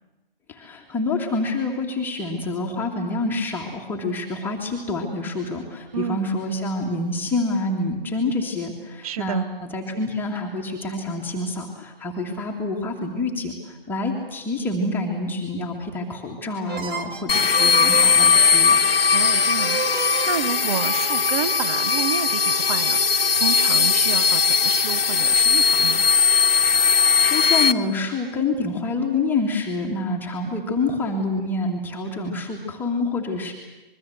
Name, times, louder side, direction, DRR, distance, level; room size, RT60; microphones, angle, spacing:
voice 1, 0.5-18.8 26.8-33.5, left 2 dB, 5° left, -1 dB, 1.9 m, -27 dB
voice 2, 9.0-9.4 19.1-26.0, right 8 dB, 40° right, 14 dB, 1.1 m, -30 dB
sound 1, 16.7-22.2, right 5 dB, 15° right, 1.2 m, -34 dB
sound 2, 17.3-27.7, left 5 dB, 75° left, 1.2 m, -19 dB
25.5 x 22.0 x 7.9 m, 1.1 s
figure-of-eight pair, 140°, 29 cm